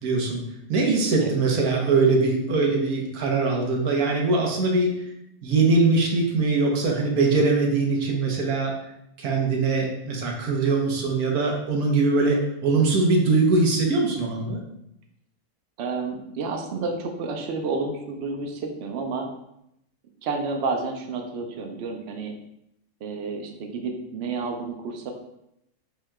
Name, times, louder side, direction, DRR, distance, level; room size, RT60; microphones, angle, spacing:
voice 1, 0.0-0.4 0.7-4.9 5.4-8.7 9.2-14.6, right 3 dB, 85° right, 0 dB, 1.3 m, -22 dB
voice 2, 15.8-19.3 20.2-22.3 23.0-25.1, right 4 dB, 60° right, 3 dB, 0.8 m, -30 dB
5.9 x 3.6 x 2.3 m, 0.80 s
omnidirectional pair, 1.5 m